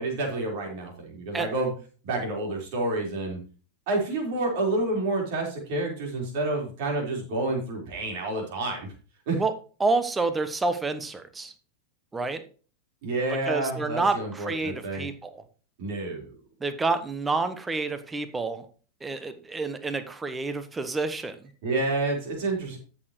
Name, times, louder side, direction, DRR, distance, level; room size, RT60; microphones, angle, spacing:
voice 1, 0.0-1.7 2.0-3.4 3.9-8.9 9.3-9.4 13.0-15.0 15.8-16.3 21.6-22.8, right 2 dB, 50° right, 0 dB, 4.5 m, -29 dB
voice 2, 9.8-11.5 12.1-12.4 13.3-15.4 16.6-18.7 19.0-21.4, right 3 dB, 10° right, 11 dB, 1.1 m, -28 dB
14.5 x 6.7 x 3.2 m, 0.38 s
figure-of-eight pair, 90°, 0 cm